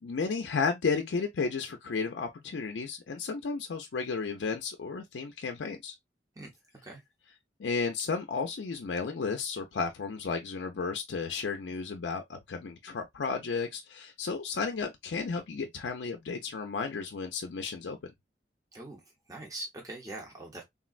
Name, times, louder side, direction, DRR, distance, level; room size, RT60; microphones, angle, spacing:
voice 1, 0.0-6.0 7.6-18.1, left 4 dB, 90° left, 0.5 m, -33 dB
voice 2, 19.3-20.6, right 2 dB, 20° right, 0.7 m, -42 dB
3.6 x 2.1 x 2.4 m
head